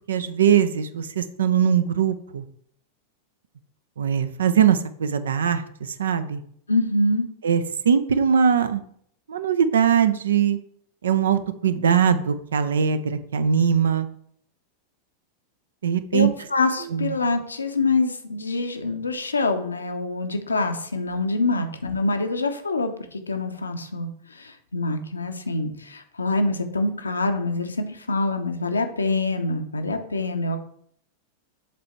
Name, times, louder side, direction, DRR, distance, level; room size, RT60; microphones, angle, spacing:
voice 1, 0.1-2.4 4.0-6.4 7.4-8.8 9.3-10.6 11.0-14.1 15.8-16.3 16.9-17.1, right 7 dB, 65° right, 12 dB, 0.5 m, -21 dB
voice 2, 6.7-7.3 16.1-30.6, left 2 dB, 75° left, 7 dB, 0.7 m, -25 dB
7.5 x 3.4 x 4.3 m, 0.66 s
figure-of-eight pair, 90°, 0 cm